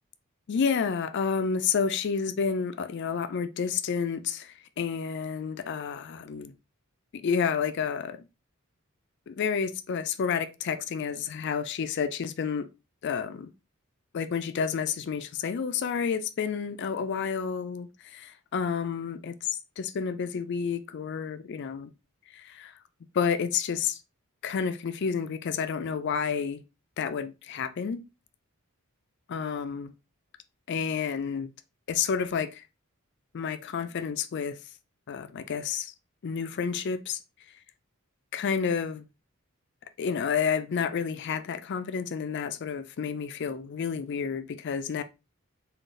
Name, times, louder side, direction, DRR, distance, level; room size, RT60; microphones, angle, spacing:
voice 1, 0.5-6.5 7.1-8.2 9.3-12.7 13.0-13.5 14.1-21.9 22.3-22.7 23.1-24.0 24.4-26.6 27.0-28.0 29.3-29.9 30.7-31.5 31.9-32.6 33.3-34.6 35.1-35.9 36.2-37.2 38.3-39.1 40.0-45.0, left 6 dB, 55° left, 0.4 m, -30 dB
3.9 x 2.3 x 3.7 m
head